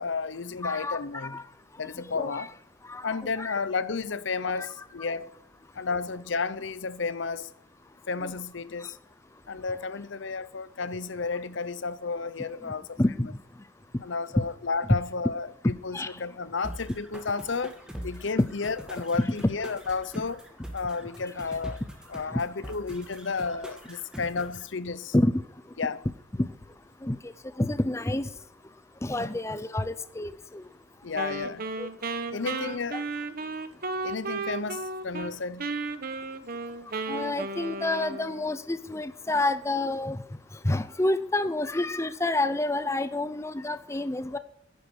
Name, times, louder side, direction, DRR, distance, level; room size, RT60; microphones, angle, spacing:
voice 1, 0.0-1.4 1.8-2.5 3.0-5.3 5.7-7.5 8.1-9.0 9.5-13.0 14.0-17.7 18.0-20.4 20.7-21.8 22.1-25.1 25.8-26.0 29.2-29.3 31.0-31.7 32.3-33.0 34.0-35.7, left 4 dB, 70° left, 0.7 m, -32 dB
voice 2, 0.6-1.4 2.1-2.5 2.9-3.6 8.2-8.3 13.0-13.3 14.9-15.0 15.9-16.1 22.3-22.4 25.1-25.4 26.4-26.5 27.0-27.3 27.6-28.3 29.0-30.6 31.8-31.9 32.4-33.0 37.1-40.2 40.6-44.4, left 2 dB, 15° left, 0.6 m, -28 dB
sound 1, 16.6-24.6, equal, 5° right, 2.3 m, -43 dB
Wind instrument woodwind instrument, 31.1-35.3 35.6-38.5, right 3 dB, 50° right, 1.1 m, -34 dB
10.5 x 10.5 x 9.8 m
head